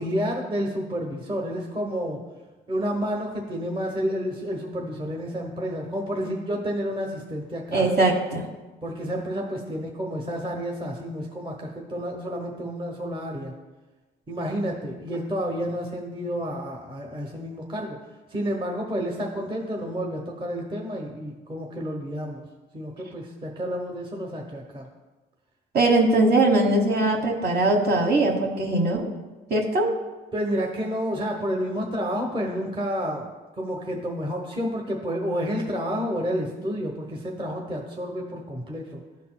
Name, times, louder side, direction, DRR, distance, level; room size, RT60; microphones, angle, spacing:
voice 1, 0.0-2.2 2.7-7.9 8.8-13.5 14.3-18.0 18.3-22.4 22.7-24.9 30.3-33.3 33.6-39.0, equal, 25° right, 0 dB, 0.9 m, -30 dB
voice 2, 7.7-8.4 25.7-29.1 29.5-29.9, right 2 dB, 50° right, 1 dB, 1.3 m, -21 dB
12.5 x 4.1 x 2.2 m, 1.2 s
cardioid pair, 90°, 20 cm